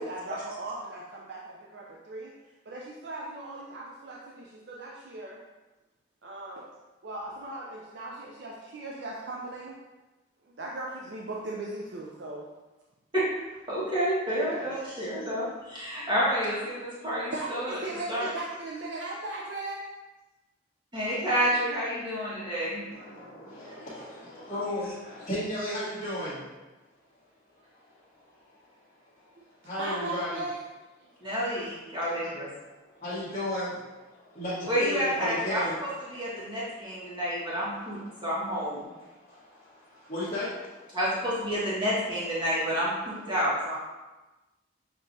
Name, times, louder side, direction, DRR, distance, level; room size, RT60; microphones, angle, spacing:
voice 1, 0.0-2.3 2.7-5.4 6.2-6.7 7.0-9.8 10.4-12.5 14.3-14.7 17.3-19.8 29.4-29.5 29.8-30.6, right 2 dB, 55° right, -3 dB, 0.5 m, -38 dB
voice 2, 13.7-17.7 18.1-18.3 20.9-22.8 31.2-32.5 34.7-38.8 40.9-43.8, equal, 20° right, -9 dB, 1.5 m, -29 dB
voice 3, 22.9-23.7 23.9-26.4 27.7-28.7 29.1-29.3 29.6-30.4 32.8-33.8 34.3-38.2 38.8-41.0, left 1 dB, 35° left, -13 dB, 1.3 m, -36 dB
6.3 x 3.0 x 2.6 m, 1.1 s
head